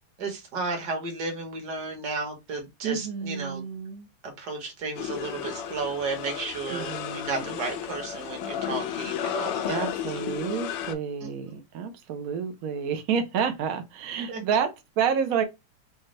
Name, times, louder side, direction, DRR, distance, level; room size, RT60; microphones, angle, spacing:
voice 1, 0.2-3.6 4.2-9.9 11.2-11.3 14.3-14.4, right 3 dB, 55° right, 1.5 m, -33 dB
voice 2, 2.8-4.1 6.7-7.6 9.7-15.4, right 7 dB, 80° right, 0.7 m, -29 dB
sound 1, 5.0-10.9, left 9 dB, 75° left, 1.2 m, -33 dB
5.1 x 2.2 x 3.2 m
omnidirectional pair, 2.4 m